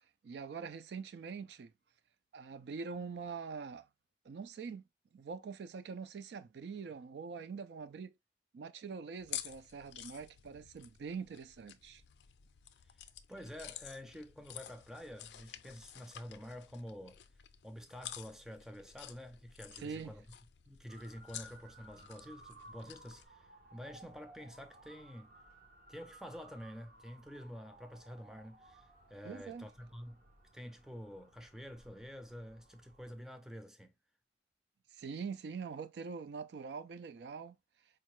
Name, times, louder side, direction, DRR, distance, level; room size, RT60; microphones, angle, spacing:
voice 1, 0.2-1.7 2.3-3.9 4.3-4.8 5.1-8.1 8.5-12.0 19.8-20.1 29.2-29.7 34.9-37.5, right 5 dB, 75° right, 0.3 m, -44 dB
sound 1, 9.2-23.3, left 11 dB, 80° left, 0.4 m, -51 dB
voice 2, 13.3-17.2 17.6-20.3 20.7-25.3 25.9-30.2 30.5-33.9, equal, 5° right, 0.4 m, -49 dB
Motor vehicle (road) / Siren, 20.9-33.1, right 2 dB, 50° right, 0.8 m, -59 dB
4.5 x 2.2 x 3.0 m
head